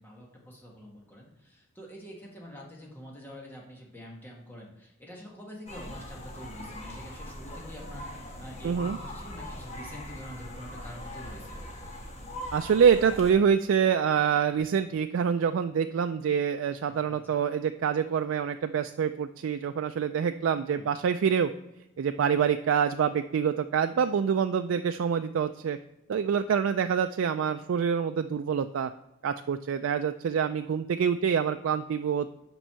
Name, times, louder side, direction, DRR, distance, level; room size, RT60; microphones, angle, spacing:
voice 1, 0.0-11.8 16.8-17.4 20.8-20.9, equal, 10° left, -2 dB, 1.5 m, -46 dB
sound 1, 5.7-13.3, left 1 dB, 35° left, 1.2 m, -41 dB
voice 2, 8.6-9.0 12.5-21.5 22.0-25.8 26.1-28.9 29.2-32.3, right 7 dB, 85° right, 8 dB, 0.3 m, -26 dB
5.9 x 5.4 x 6.8 m, 0.90 s
head